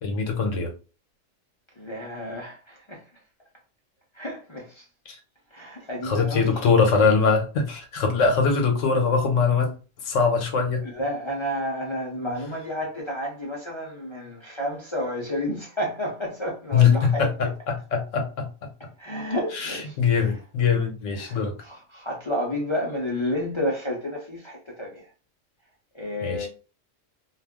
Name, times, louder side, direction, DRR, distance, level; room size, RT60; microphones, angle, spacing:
voice 1, 0.0-0.7 6.0-9.8 10.1-10.8 16.7-18.5 19.6-21.5 26.2-26.5, left 5 dB, 75° left, 1.1 m, -22 dB
voice 2, 1.8-3.1 4.1-4.9 5.5-6.6 10.8-17.5 18.8-20.4 21.2-25.1 25.9-26.5, left 1 dB, 45° left, 0.3 m, -31 dB
2.4 x 2.3 x 3.5 m
omnidirectional pair, 1.4 m